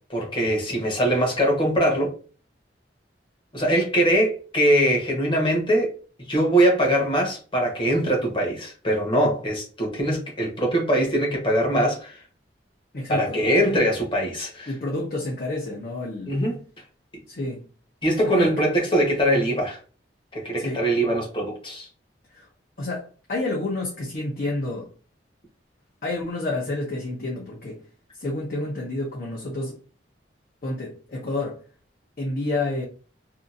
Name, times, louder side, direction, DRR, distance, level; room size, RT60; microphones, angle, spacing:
voice 1, 0.1-2.1 3.5-5.9 6.3-12.1 13.1-14.7 16.3-16.6 18.0-19.8 20.3-21.9, right 1 dB, 30° left, 1.0 m, -22 dB
voice 2, 12.9-13.4 14.7-16.3 17.3-17.7 18.2-18.7 20.6-20.8 22.3-22.5 22.8-24.9 26.0-27.8 28.2-29.8 30.6-31.6 32.2-32.8, left 2 dB, 55° left, 0.8 m, -29 dB
2.7 x 2.5 x 2.5 m
head